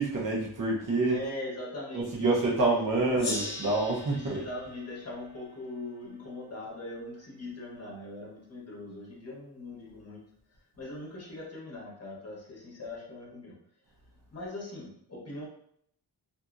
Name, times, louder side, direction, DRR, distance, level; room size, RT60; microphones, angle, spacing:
voice 1, 0.0-1.2 1.9-4.4, right 2 dB, 50° right, -3 dB, 0.8 m, -27 dB
voice 2, 1.1-3.5 4.1-10.2 10.8-13.5 14.3-15.5, left 2 dB, 35° left, -4 dB, 1.1 m, -41 dB
Gong, 3.2-6.3, left 2 dB, 65° left, 0.8 m, -40 dB
2.7 x 2.6 x 2.4 m, 0.66 s
wide cardioid pair, 140°, 42 cm